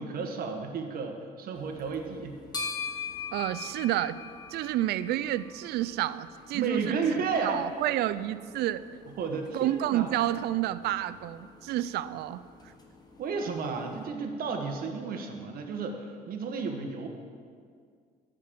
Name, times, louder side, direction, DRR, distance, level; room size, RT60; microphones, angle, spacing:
voice 1, 0.0-2.4 6.5-7.6 9.2-10.3 13.2-17.1, right 4 dB, 60° right, 4 dB, 1.5 m, -33 dB
sound 1, 1.5-14.1, left 5 dB, 25° left, 1.4 m, -44 dB
voice 2, 3.3-4.2 4.5-7.0 7.4-8.8 9.5-12.7, right 13 dB, 75° right, 15 dB, 0.4 m, -30 dB
12.5 x 5.3 x 7.5 m, 2.1 s
cardioid pair, 110°, 17 cm